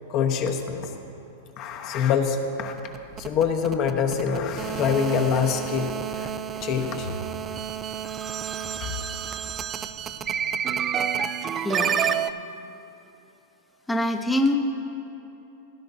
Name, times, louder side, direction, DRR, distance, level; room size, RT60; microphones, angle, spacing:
voice 1, 0.1-0.9 1.6-2.7 3.2-6.3 6.6-7.2 8.8-8.9, left 6 dB, 45° left, 4 dB, 1.0 m, -25 dB
sound 1, 2.7-12.3, right 8 dB, 25° right, 0.3 m, -29 dB
voice 2, 11.6-12.0 13.9-14.5, left 1 dB, 5° left, 4 dB, 0.8 m, -24 dB
17.0 x 10.5 x 2.7 m, 2.9 s
hypercardioid pair, 130°, 0 cm